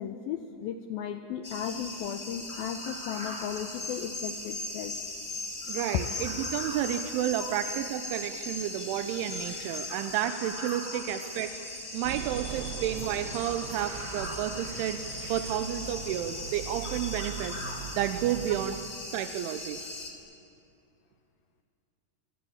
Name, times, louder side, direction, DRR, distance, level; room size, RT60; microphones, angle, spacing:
voice 1, 0.0-5.0 5.9-6.1 7.4-7.6, left 9 dB, 80° left, 7 dB, 2.1 m, -35 dB
sound 1, 1.4-20.1, left 2 dB, 20° left, 2.1 m, -38 dB
voice 2, 5.7-11.6 11.9-17.7 18.0-18.8 19.1-19.8, right 12 dB, 90° right, 9 dB, 3.3 m, -31 dB
sound 2, 12.0-18.7, right 7 dB, 70° right, 3.7 m, -41 dB
27.0 x 23.5 x 8.7 m, 2.6 s
omnidirectional pair, 5.3 m